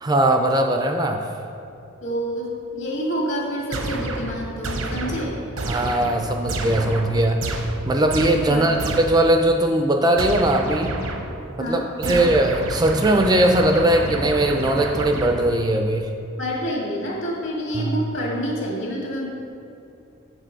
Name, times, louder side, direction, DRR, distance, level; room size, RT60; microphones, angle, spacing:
voice 1, 0.0-1.4 5.7-7.5 7.8-10.9 11.7-16.1 17.8-18.0, right 1 dB, 20° right, 4 dB, 0.4 m, -20 dB
voice 2, 2.0-5.4 8.5-8.8 11.6-12.3 16.4-19.3, equal, 60° left, -3 dB, 2.0 m, -28 dB
sound 1, 3.7-9.3 10.2-11.5 12.0-15.7, right 2 dB, 85° right, 0.9 m, -29 dB
7.5 x 6.9 x 4.4 m, 2.7 s
head